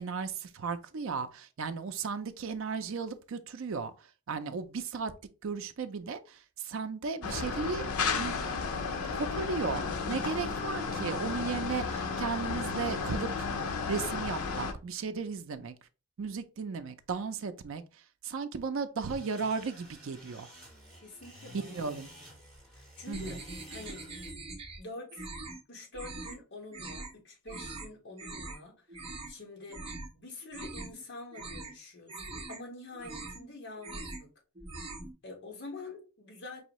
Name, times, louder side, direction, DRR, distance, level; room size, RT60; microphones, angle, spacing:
voice 1, 0.0-3.9 4.3-5.1 5.4-7.9 8.1-8.4 9.1-9.8 10.1-13.5 13.9-15.8 16.2-17.8 18.2-20.5 21.7-22.1 23.1-23.4, right 5 dB, 65° right, 0.4 m, -35 dB
sound 1, 7.2-14.7, left 4 dB, 85° left, 0.6 m, -33 dB
sound 2, 19.0-24.3, equal, 5° left, 1.7 m, -52 dB
voice 2, 21.0-22.4 22.7-24.1 24.8-25.3 25.7-34.3 35.2-36.6, left 2 dB, 55° left, 1.4 m, -47 dB
sound 3, 23.1-24.8 25.1-25.6 25.9-26.4 26.7-27.1 27.5-27.9 28.2-28.6 28.9-29.3 29.7-30.1 30.4-31.0 31.3-31.7 32.1-32.6 32.9-33.5 33.8-34.3 34.6-35.1, right 2 dB, 25° right, 0.7 m, -42 dB
4.8 x 2.6 x 3.0 m
head